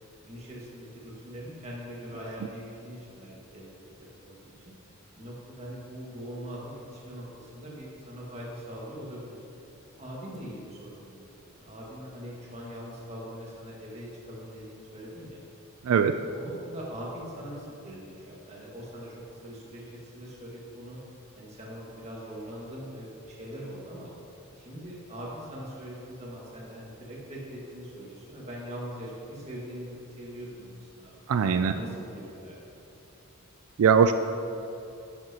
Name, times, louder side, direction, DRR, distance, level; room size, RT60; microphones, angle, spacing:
voice 1, 0.3-3.7 4.0-4.5 5.2-9.4 9.9-15.4 16.3-21.0 21.3-24.1 24.6-31.2 31.7-32.6, equal, 30° right, -5 dB, 1.8 m, -42 dB
voice 2, 15.8-16.2 31.3-31.7 33.8-34.1, right 6 dB, 90° right, 8 dB, 0.3 m, -21 dB
11.0 x 7.6 x 2.9 m, 2.8 s
head